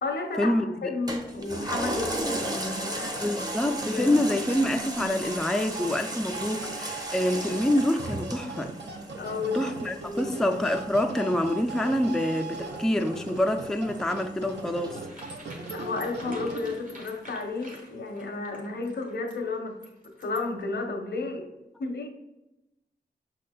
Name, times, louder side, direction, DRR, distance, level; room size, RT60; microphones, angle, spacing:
voice 1, 0.0-3.3 3.9-4.1 9.2-9.7 10.0-10.3 15.7-19.8 20.0-21.5 21.8-22.1, left 3 dB, 80° left, 0.7 m, -32 dB
Toilet flush, 1.1-15.9 16.4-16.5, right 1 dB, 20° right, 0.7 m, -37 dB
sound 1, 2.2-17.0, right 3 dB, 85° right, 0.5 m, -39 dB
voice 2, 3.2-8.7 9.5-15.0, left 1 dB, 5° left, 0.3 m, -26 dB
sound 2, 13.9-20.6, equal, 50° right, 1.3 m, -48 dB
6.1 x 3.8 x 2.2 m
wide cardioid pair, 75°, 17 cm